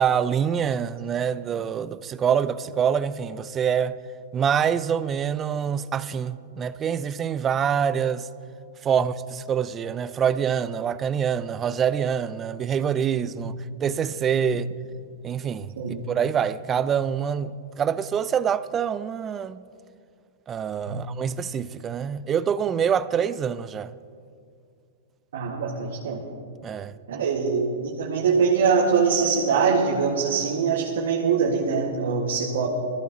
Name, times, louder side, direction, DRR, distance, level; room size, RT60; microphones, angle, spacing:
voice 1, 0.0-4.0 4.3-8.3 8.8-13.5 13.8-14.7 15.2-15.7 16.1-19.6 20.5-23.9 26.6-26.9, right 8 dB, 20° right, 0.4 m, -25 dB
voice 2, 25.3-26.2 27.1-32.7, right 5 dB, 80° right, 1.9 m, -23 dB
21.5 x 14.5 x 3.0 m
hypercardioid pair, 150°, 0 cm